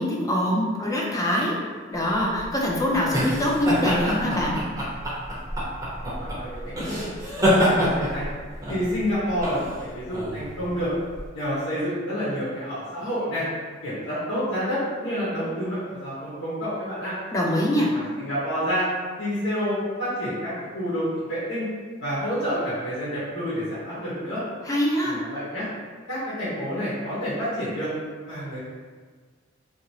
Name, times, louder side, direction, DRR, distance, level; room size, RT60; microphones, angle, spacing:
voice 1, 0.0-1.6 1.9-4.6 17.3-17.9 24.6-25.2, left 1 dB, 15° left, -3 dB, 0.5 m, -24 dB
sound 1, 2.1-11.3, equal, 20° right, 0.7 m, -26 dB
voice 2, 6.0-8.3 8.7-10.9 11.3-13.4 13.8-17.1 17.9-18.8 19.2-21.6 22.0-24.4 25.0-25.7 26.1-27.9 28.2-28.6, equal, 90° left, -11 dB, 1.2 m, -29 dB
2.8 x 2.7 x 2.8 m, 1.5 s
head